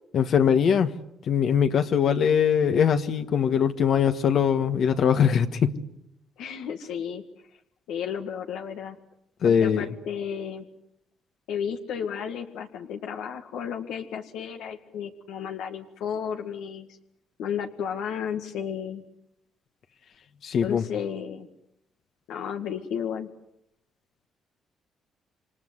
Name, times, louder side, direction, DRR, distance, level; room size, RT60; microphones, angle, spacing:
voice 1, 0.1-0.9 1.3-5.8 9.4-9.9 20.4-20.8, left 7 dB, 65° left, 7 dB, 1.5 m, -22 dB
voice 2, 6.4-7.2 7.9-9.0 9.4-10.6 11.5-16.9 17.4-19.0 20.6-21.5 22.3-23.3, left 8 dB, 90° left, 4 dB, 2.0 m, -33 dB
28.5 x 24.5 x 8.2 m, 0.79 s
cardioid pair, 90°, 0 cm